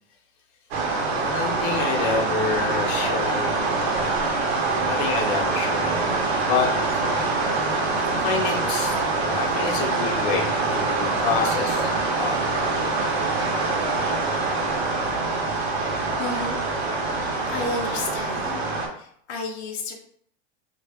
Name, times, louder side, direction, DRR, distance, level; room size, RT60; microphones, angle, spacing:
sound 1, 0.7-18.9, right 3 dB, 70° right, 0.9 m, -24 dB
voice 1, 1.1-3.9 4.6-6.2 6.4-6.7 8.0-9.0 9.2-12.3, left 5 dB, 45° left, 0 dB, 0.7 m, -28 dB
voice 2, 16.2-16.6 17.5-18.7 18.9-19.9, left 3 dB, 80° left, 1 dB, 0.8 m, -31 dB
2.3 x 2.0 x 3.4 m, 0.62 s
hypercardioid pair, 110°, 32 cm